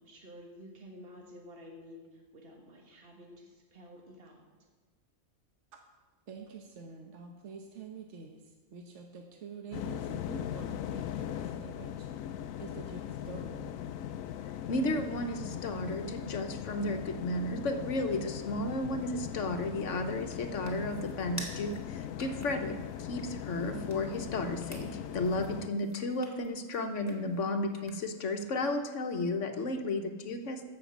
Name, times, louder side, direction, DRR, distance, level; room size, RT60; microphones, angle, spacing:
voice 1, 0.0-4.4, equal, 45° right, 1 dB, 1.9 m, -51 dB
voice 2, 6.3-12.1 12.6-13.7, right 5 dB, 65° right, 3 dB, 1.3 m, -47 dB
sound 1, 9.7-25.7, left 10 dB, 90° left, 1.0 m, -39 dB
voice 3, 14.7-30.6, left 2 dB, 65° left, 7 dB, 1.3 m, -33 dB
sound 2, 19.6-28.3, left 1 dB, 10° left, 1.9 m, -51 dB
14.5 x 6.1 x 7.3 m, 1.3 s
omnidirectional pair, 1.4 m